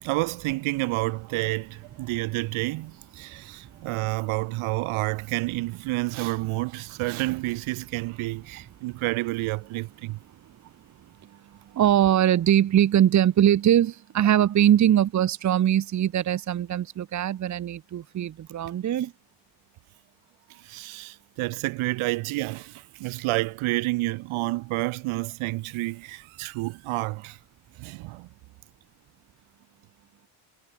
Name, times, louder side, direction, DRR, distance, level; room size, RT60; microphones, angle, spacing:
voice 1, 0.0-10.2 18.9-19.1 20.5-27.4 27.8-28.3, right 21 dB, 85° right, 3.7 m, -29 dB
voice 2, 11.7-19.1, right 11 dB, 35° right, 2.1 m, -21 dB
cardioid pair, 175°, 48 cm